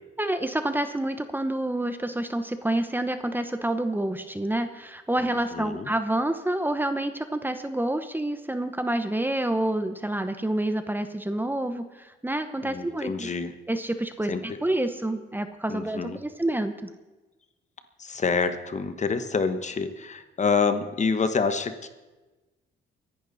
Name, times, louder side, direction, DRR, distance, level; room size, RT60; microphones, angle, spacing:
voice 1, 0.2-13.3 13.7-16.9, right 1 dB, 10° right, 9 dB, 1.0 m, -28 dB
voice 2, 5.5-5.9 12.6-13.5 14.3-14.4 15.7-16.2 18.0-21.9, left 5 dB, 35° left, 9 dB, 1.2 m, -27 dB
24.0 x 11.0 x 4.1 m, 1.1 s
cardioid pair, 90°, 20 cm